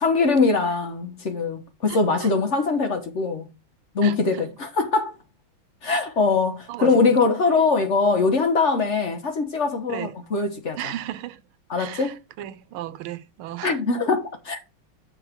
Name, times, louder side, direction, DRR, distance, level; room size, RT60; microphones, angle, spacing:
voice 1, 0.0-3.5 3.9-5.2 5.8-10.9 11.7-12.2 13.6-14.7, left 4 dB, 45° left, 1.0 m, -22 dB
voice 2, 1.9-2.3 4.0-4.5 6.7-7.0 9.9-10.1 10.8-11.4 11.8-13.8, right 13 dB, 90° right, 1.6 m, -35 dB
7.1 x 3.9 x 5.8 m
omnidirectional pair, 2.3 m